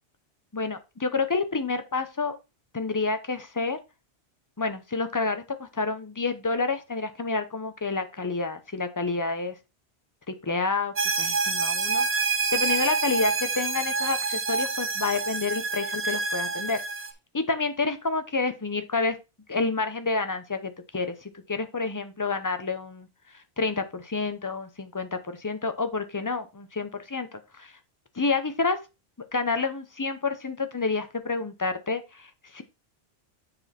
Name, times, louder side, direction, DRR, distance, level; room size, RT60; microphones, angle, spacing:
voice 1, 0.5-2.4 2.7-3.8 4.6-9.5 10.3-16.8 17.3-19.2 19.5-23.1 23.6-27.7 28.1-28.8 29.3-32.6, left 4 dB, 20° left, 9 dB, 0.7 m, -29 dB
sound 1, 11.0-17.1, right 4 dB, 40° right, 0.9 m, -27 dB
7.6 x 4.8 x 4.2 m, 0.26 s
omnidirectional pair, 1.1 m